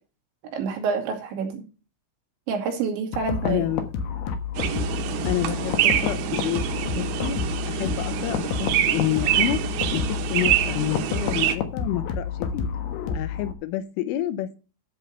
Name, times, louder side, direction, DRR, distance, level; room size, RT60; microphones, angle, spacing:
voice 1, 0.5-1.7 2.5-3.7, right 5 dB, 70° right, 3 dB, 4.3 m, -28 dB
sound 1, 3.1-13.5, left 6 dB, 65° left, 2.8 m, -30 dB
voice 2, 3.4-3.8 5.3-6.7 7.0-7.4 7.7-9.6 9.9-12.3 12.5-12.7 13.1-14.6, left 12 dB, 80° left, 11 dB, 3.4 m, -28 dB
sound 2, 4.6-11.6, right 11 dB, 85° right, 3.8 m, -26 dB
13.0 x 5.7 x 5.5 m, 0.34 s
omnidirectional pair, 5.8 m